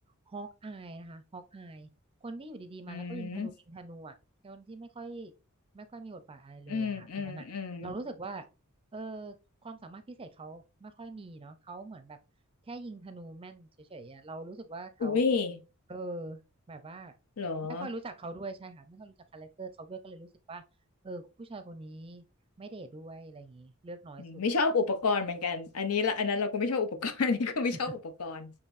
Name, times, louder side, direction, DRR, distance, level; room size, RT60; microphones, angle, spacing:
voice 1, 0.3-1.9 2.2-4.1 4.4-5.3 5.7-7.5 7.8-8.5 8.9-9.4 9.6-12.2 12.7-15.3 15.9-16.4 16.7-17.2 17.6-20.6 21.0-22.2 22.6-24.4, right 2 dB, 25° right, 0.5 m, -43 dB
voice 2, 2.9-3.5 6.7-8.0 15.0-15.6 17.4-17.9 24.2-28.5, left 4 dB, 85° left, 0.7 m, -30 dB
6.5 x 3.0 x 2.5 m
head